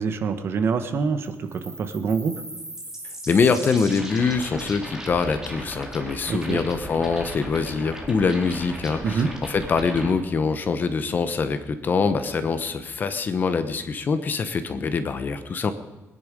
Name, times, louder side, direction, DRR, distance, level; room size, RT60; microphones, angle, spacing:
voice 1, 0.0-2.3 6.3-6.6 9.0-9.3, right 5 dB, 50° right, 10 dB, 1.2 m, -25 dB
sound 1, 1.2-10.1, right 1 dB, 10° right, 2.5 m, -37 dB
voice 2, 3.3-15.7, left 5 dB, 35° left, 10 dB, 1.0 m, -24 dB
22.5 x 10.5 x 5.1 m, 1.1 s
cardioid pair, 145°, 5 cm